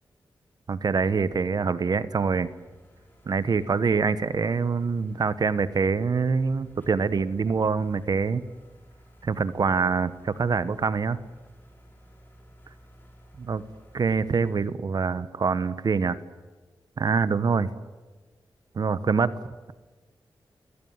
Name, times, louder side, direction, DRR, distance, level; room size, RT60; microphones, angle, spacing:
voice 1, 0.7-2.5 3.3-8.4 9.2-11.2 13.4-13.6 13.9-16.2 17.0-17.7 18.7-19.3, right 5 dB, 55° right, 15 dB, 1.1 m, -25 dB
sound 1, 2.2-14.7, equal, 25° left, 5.6 m, -55 dB
29.5 x 17.0 x 9.5 m, 1.3 s
wide cardioid pair, 110°, 8 cm